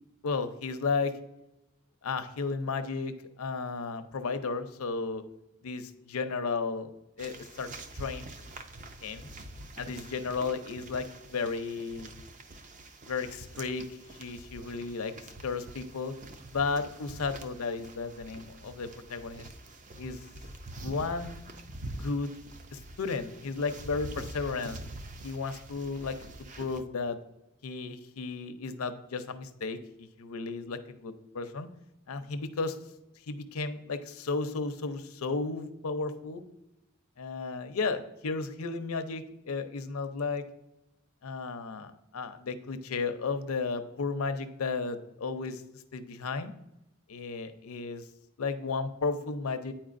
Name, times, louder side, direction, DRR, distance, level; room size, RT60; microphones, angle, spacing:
voice 1, 0.2-1.1 2.0-5.2 5.6-6.9 7.2-7.7 8.0-8.3 9.0-9.3 9.8-12.1 13.1-13.9 14.2-15.1 15.4-16.1 16.5-19.5 20.0-20.2 20.8-21.4 22.0-22.3 22.7-24.8 25.2-26.2 26.6-27.2 27.6-31.7 32.1-32.8 33.3-36.4 37.2-40.4 41.2-45.6 45.9-46.5 47.1-48.0 48.4-49.7, left 4 dB, 85° left, 10 dB, 0.6 m, -34 dB
sound 1, 7.2-26.8, right 1 dB, 35° right, 0.5 m, -45 dB
9.4 x 4.4 x 2.5 m, 0.91 s
head